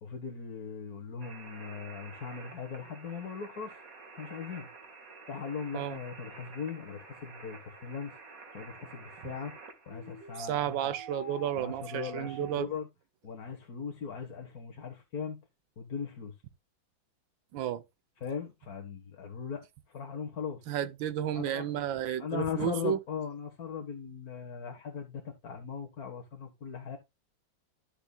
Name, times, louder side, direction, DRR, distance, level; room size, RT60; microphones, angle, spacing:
voice 1, 0.0-3.8 4.2-4.7 5.3-8.2 8.5-9.5 9.9-10.9 11.6-12.9 13.2-15.4 15.8-16.3 18.2-20.6 21.3-27.0, left 6 dB, 50° left, 1.8 m, -39 dB
sound 1, 1.2-12.5, right 3 dB, 45° right, 2.2 m, -48 dB
voice 2, 10.4-12.7 17.5-17.8 20.7-23.0, right 11 dB, 75° right, 1.4 m, -32 dB
12.5 x 6.9 x 2.3 m
omnidirectional pair, 2.2 m